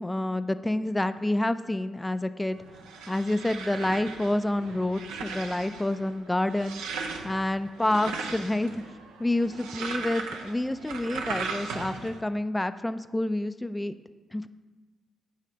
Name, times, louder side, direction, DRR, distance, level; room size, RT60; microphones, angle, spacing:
voice 1, 0.0-2.6 3.1-6.8 7.2-8.8 9.2-14.0 14.3-14.5, left 1 dB, 15° left, 11 dB, 0.3 m, -28 dB
sound 1, 2.5-12.2, right 4 dB, 85° right, 0.5 m, -38 dB
8.3 x 3.3 x 5.1 m, 1.3 s
hypercardioid pair, 40°, 0 cm